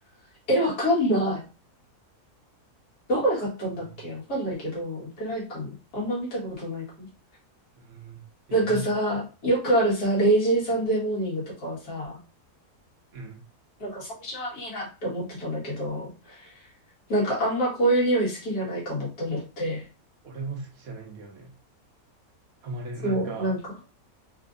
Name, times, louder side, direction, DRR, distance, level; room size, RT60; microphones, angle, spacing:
voice 1, 0.5-1.4 3.1-7.1 8.5-12.2 13.8-16.5 17.1-19.8 23.0-23.6, right 1 dB, 75° left, -6 dB, 2.1 m, -26 dB
voice 2, 7.7-9.0 13.1-13.4 20.2-21.6 22.6-23.5, right 2 dB, 70° right, 2 dB, 1.3 m, -38 dB
4.3 x 2.6 x 2.5 m, 0.34 s
omnidirectional pair, 1.6 m